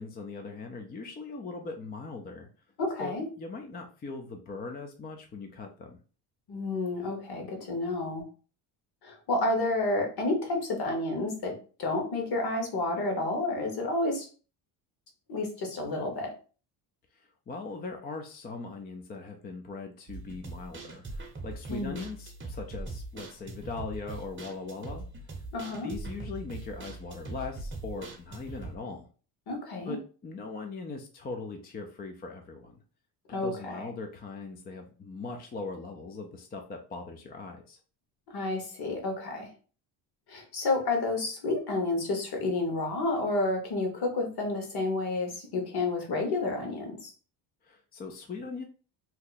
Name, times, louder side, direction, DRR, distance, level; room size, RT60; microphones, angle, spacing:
voice 1, 0.0-2.5 3.0-6.0 17.1-25.4 25.8-29.1 29.9-32.8 33.4-37.8 47.6-48.6, left 4 dB, 20° left, 3 dB, 0.3 m, -40 dB
voice 2, 2.8-3.3 6.5-8.2 9.0-14.3 15.3-16.3 21.7-22.0 25.5-25.9 29.5-30.0 33.3-33.9 38.3-39.5 40.3-47.1, left 2 dB, 50° left, 2 dB, 1.2 m, -30 dB
sound 1, 20.1-28.8, right 3 dB, 25° right, 0.7 m, -41 dB
2.8 x 2.1 x 3.8 m, 0.38 s
cardioid pair, 100°, 49 cm